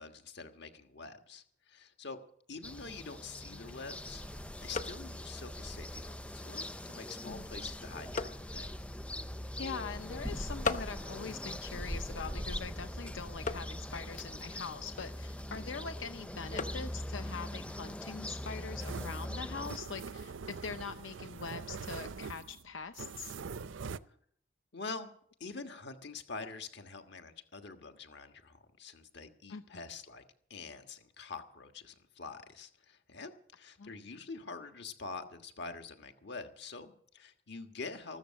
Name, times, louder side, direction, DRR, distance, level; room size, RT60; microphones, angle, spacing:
voice 1, 0.0-1.4 1.7-2.2 2.5-4.2 4.6-8.7 15.5-15.7 24.7-25.1 25.4-30.2 30.5-38.2, left 4 dB, 65° left, 6 dB, 1.5 m, -46 dB
sound 1, 2.6-19.8, equal, 5° left, 0.5 m, -41 dB
sound 2, 3.2-18.7, left 4 dB, 40° left, 0.9 m, -45 dB
voice 2, 9.6-23.3 29.5-29.9 33.8-33.9, left 5 dB, 90° left, 9 dB, 0.7 m, -43 dB
sound 3, 18.8-24.0, right 5 dB, 80° right, 0.5 m, -43 dB
14.5 x 13.5 x 6.4 m, 0.63 s
head